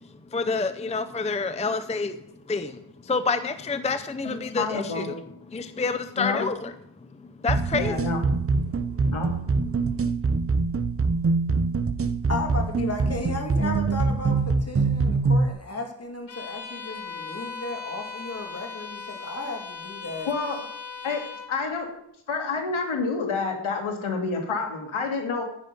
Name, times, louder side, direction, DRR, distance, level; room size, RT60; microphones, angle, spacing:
voice 1, 0.3-5.2 5.5-6.7 7.0-8.0 8.9-9.1 9.7-10.1, left 4 dB, 15° left, 10 dB, 0.6 m, -29 dB
voice 2, 4.2-5.1 6.2-6.5 7.7-8.2 9.1-9.3 20.3-20.6 21.0-21.2 21.5-21.9 22.3-25.4, left 4 dB, 85° left, 3 dB, 2.2 m, -28 dB
sound 1, 7.5-15.5, right 4 dB, 30° right, 0.8 m, -24 dB
voice 3, 12.3-20.3, left 3 dB, 30° left, 3 dB, 2.5 m, -34 dB
Bowed string instrument, 16.3-21.6, left 5 dB, 60° left, 2.4 m, -38 dB
9.8 x 9.2 x 5.4 m, 0.76 s
cardioid pair, 75°, 48 cm